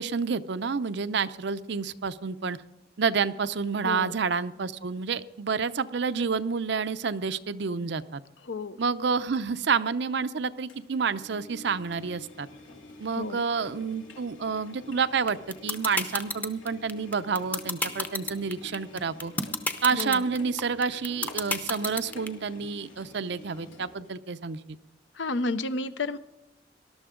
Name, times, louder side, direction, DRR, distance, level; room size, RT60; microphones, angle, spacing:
voice 1, 0.0-2.6 3.0-8.2 8.8-12.5 13.0-15.4 15.6-19.3 19.8-24.8, right 5 dB, 60° right, 13 dB, 0.6 m, -29 dB
voice 2, 3.8-4.2 8.5-8.8 13.1-13.4 19.9-20.2 25.2-26.2, left 3 dB, 70° left, 13 dB, 0.7 m, -31 dB
Engine, 10.7-24.1, left 2 dB, 90° left, 2.7 m, -49 dB
sound 1, 15.3-22.3, left 2 dB, 10° left, 0.7 m, -29 dB
19.5 x 12.0 x 3.8 m, 0.93 s
head